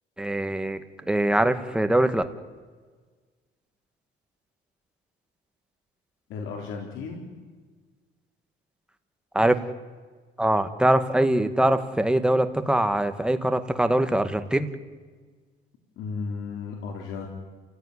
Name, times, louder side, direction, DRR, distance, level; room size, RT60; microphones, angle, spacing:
voice 1, 0.2-0.8 1.1-2.2 9.3-9.6 10.4-14.7, right 1 dB, 5° right, 9 dB, 1.5 m, -22 dB
voice 2, 6.3-7.3 16.0-17.3, left 5 dB, 70° left, 1 dB, 4.0 m, -34 dB
29.5 x 16.5 x 9.8 m, 1.5 s
cardioid pair, 140°, 21 cm